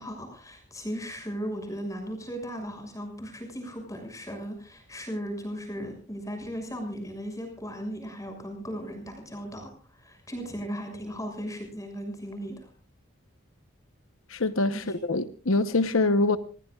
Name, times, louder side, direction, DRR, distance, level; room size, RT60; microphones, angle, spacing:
voice 1, 0.0-12.7 14.7-14.9, equal, 15° left, 6.4 m, -37 dB
voice 2, 14.3-16.4, left 2 dB, 75° left, 1.0 m, -24 dB
28.0 x 19.5 x 2.4 m
head